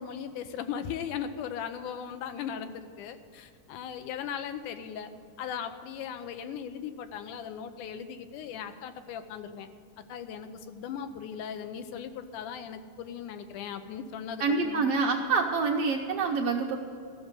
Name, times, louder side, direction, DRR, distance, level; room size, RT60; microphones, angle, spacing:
voice 1, 0.0-5.1 5.4-9.7 10.1-14.9, left 8 dB, 85° left, 9 dB, 2.3 m, -38 dB
voice 2, 14.4-16.8, right 4 dB, 70° right, 1 dB, 1.5 m, -26 dB
13.5 x 6.6 x 9.0 m, 2.3 s
omnidirectional pair, 3.5 m